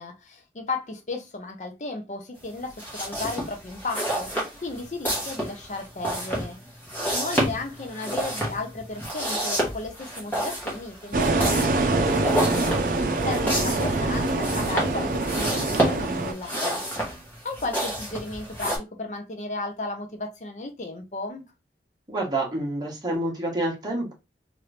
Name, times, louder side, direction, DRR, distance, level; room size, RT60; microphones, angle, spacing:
voice 1, 0.0-6.6 7.1-11.6 11.9-16.8 17.4-21.5, left 3 dB, 40° left, 0.5 m, -34 dB
sound 1, 2.7-18.8, right 1 dB, 10° left, 1.1 m, -30 dB
sound 2, 11.1-16.3, right 2 dB, 50° right, 0.5 m, -24 dB
voice 2, 22.1-24.1, right 1 dB, 25° right, 1.1 m, -28 dB
3.0 x 2.5 x 3.3 m
head